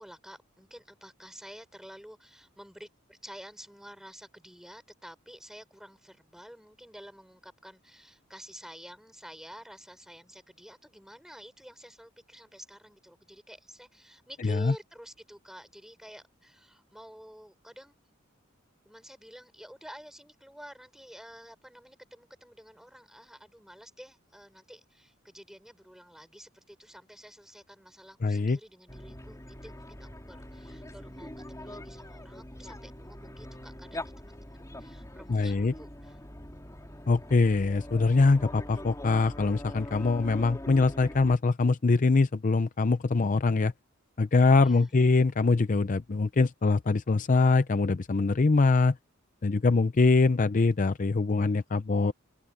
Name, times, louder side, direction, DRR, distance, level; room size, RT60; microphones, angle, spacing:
voice 1, 0.0-18.0 18.8-36.2 44.6-45.0, equal, ahead, 5.0 m, -50 dB
voice 2, 14.4-14.7 28.2-28.6 35.3-35.7 37.1-43.7 44.2-49.0 49.4-52.1, left 3 dB, 40° left, 0.5 m, -23 dB
sound 1, 28.9-41.4, left 1 dB, 15° left, 2.9 m, -43 dB
head